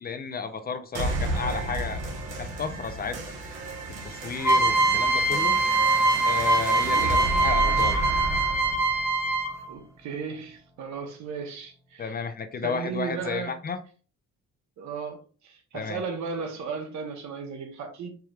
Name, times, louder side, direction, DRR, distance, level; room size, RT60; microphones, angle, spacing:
voice 1, 0.0-2.0 2.4-3.3 4.0-5.6 6.2-8.1 12.0-13.8 15.7-16.0, left 5 dB, 30° left, 0.5 m, -33 dB
sound 1, 0.9-10.0, right 2 dB, 90° right, 1.3 m, -32 dB
sound 2, 4.4-9.7, right 2 dB, 10° right, 0.8 m, -23 dB
voice 2, 6.8-7.2 9.7-12.2 12.6-13.6 14.8-18.2, right 5 dB, 65° right, 1.0 m, -35 dB
4.7 x 3.1 x 2.4 m
cardioid pair, 100°, 31 cm